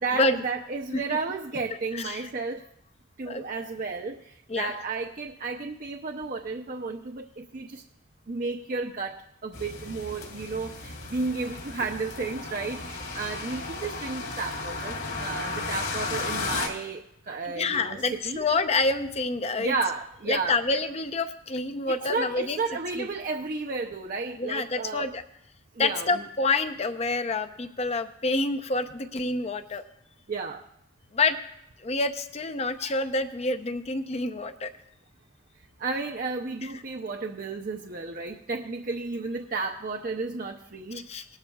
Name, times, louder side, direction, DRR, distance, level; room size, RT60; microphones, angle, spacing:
voice 1, 0.0-2.7 3.2-7.8 8.3-18.0 18.2-18.4 19.6-20.6 21.9-25.1 25.8-26.2 30.3-30.7 35.8-41.1, right 4 dB, 45° right, 2 dB, 0.6 m, -33 dB
voice 2, 1.9-2.3 3.3-3.4 4.5-4.7 17.4-19.7 20.3-22.6 22.9-23.1 24.4-25.2 25.8-29.8 31.1-31.4 31.8-34.7 36.6-36.7 40.9-41.3, left 3 dB, 30° left, 9 dB, 0.6 m, -28 dB
sound 1, 9.5-16.7, left 3 dB, 55° left, 2.6 m, -34 dB
19.5 x 12.0 x 2.3 m, 0.79 s
head